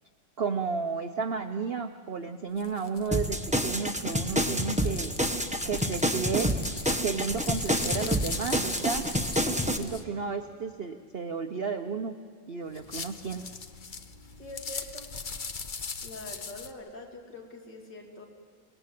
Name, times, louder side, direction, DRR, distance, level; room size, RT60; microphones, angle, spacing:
voice 1, 0.4-5.1 5.6-6.5 6.9-9.1 9.5-12.1 12.5-13.5, right 5 dB, 55° right, 7 dB, 0.6 m, -33 dB
sound 1, 2.6-10.0 12.7-16.7, left 4 dB, 45° left, 0.6 m, -40 dB
sound 2, 3.1-9.8, equal, 5° right, 0.6 m, -28 dB
voice 2, 14.4-15.1 16.0-18.3, left 2 dB, 65° left, 1 dB, 3.2 m, -44 dB
29.5 x 18.0 x 7.6 m, 2.1 s
omnidirectional pair, 2.0 m